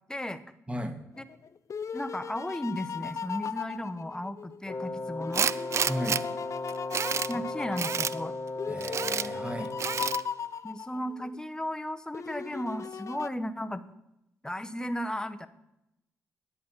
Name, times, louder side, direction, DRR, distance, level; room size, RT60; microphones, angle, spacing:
voice 1, 0.1-0.4 1.2-1.3 1.9-5.5 7.3-8.4 10.6-13.8 14.4-15.5, left 1 dB, 10° left, 12 dB, 0.9 m, -35 dB
voice 2, 0.7-1.0 5.8-6.2 7.3-7.4 8.7-9.7, equal, 20° right, 7 dB, 1.6 m, -35 dB
sound 1, 1.1-4.7 5.2-11.4 12.1-13.3, left 6 dB, 50° left, 0.5 m, -38 dB
Wind instrument woodwind instrument, 4.7-10.4, left 2 dB, 35° left, 1.6 m, -36 dB
Tools, 5.3-6.2 6.7-7.3 7.8-8.1 8.8-9.3 9.8-10.2, right 7 dB, 50° right, 0.3 m, -29 dB
10.5 x 8.2 x 5.5 m, 0.85 s
supercardioid pair, 50°, 6 cm